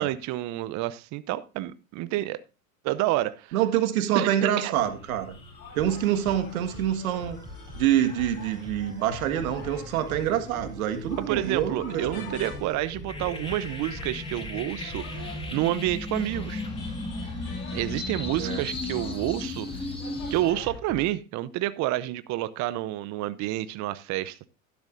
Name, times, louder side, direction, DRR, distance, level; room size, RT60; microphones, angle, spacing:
voice 1, 0.0-2.4 2.8-3.5 4.1-4.7 11.2-16.6 17.7-19.9 20.3-24.5, right 15 dB, 40° right, 15 dB, 0.7 m, -29 dB
voice 2, 3.5-5.4 5.7-7.4 7.7-12.3 18.4-18.6, right 11 dB, 75° right, 8 dB, 1.8 m, -26 dB
sound 1, 4.5-4.7 5.0-20.5, left 2 dB, 10° left, 2.1 m, -38 dB
sound 2, 4.7-20.8, left 4 dB, 75° left, 4.4 m, -45 dB
sound 3, 5.8-21.1, left 2 dB, 10° right, 4.4 m, -45 dB
12.0 x 10.5 x 2.6 m, 0.31 s
hypercardioid pair, 95°, 42 cm